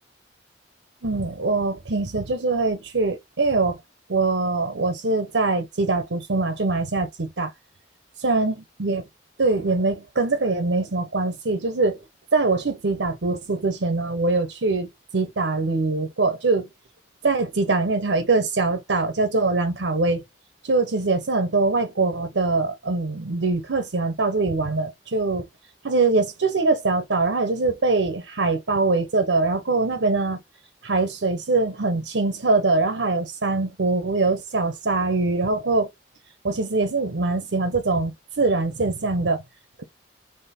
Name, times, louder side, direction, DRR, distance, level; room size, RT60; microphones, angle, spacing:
voice 1, 1.0-3.8 4.1-7.5 8.2-9.0 9.4-12.0 12.3-14.9 15.1-16.7 17.2-20.2 20.6-25.5 25.8-30.4 30.8-35.9 36.4-38.1 38.4-39.4, right 3 dB, 80° right, 0.9 m, -23 dB
3.7 x 3.1 x 4.3 m
head